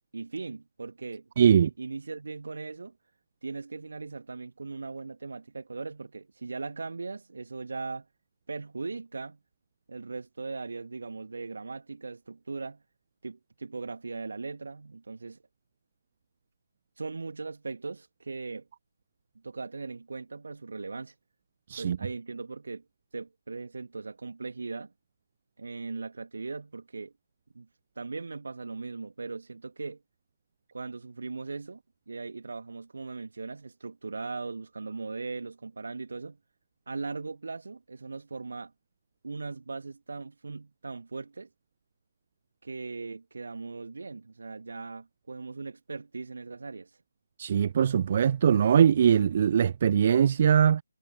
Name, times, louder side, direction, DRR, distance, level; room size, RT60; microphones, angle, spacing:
voice 1, 0.1-3.0 3.4-8.1 8.5-9.4 9.9-12.8 13.2-15.4 17.0-18.7 19.4-21.1 21.8-22.8 23.1-24.9 25.6-27.1 27.5-27.7 28.0-30.0 30.7-36.4 36.9-38.7 39.2-41.5 42.6-46.9, right 4 dB, 55° right, 2.0 m, -39 dB
voice 2, 1.4-1.7 21.7-22.0 47.4-50.8, right 8 dB, 30° right, 0.3 m, -21 dB
figure-of-eight pair, 155°, 0 cm